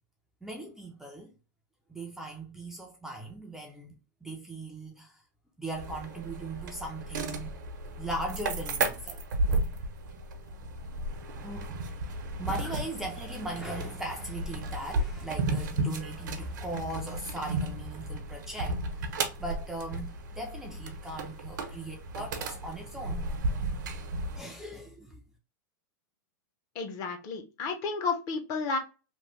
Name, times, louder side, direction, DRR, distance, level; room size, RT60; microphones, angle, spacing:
voice 1, 0.4-1.3 1.9-3.9 4.2-5.2 5.6-7.5 8.0-9.2 11.4-11.7 12.4-19.1 19.4-23.2 24.4-25.2, right 2 dB, 5° right, 0.4 m, -39 dB
sound 1, 5.7-24.4, right 2 dB, 80° right, 0.8 m, -34 dB
voice 2, 26.7-28.8, left 4 dB, 35° left, 0.6 m, -32 dB
3.0 x 2.1 x 3.1 m
supercardioid pair, 150°, 10 cm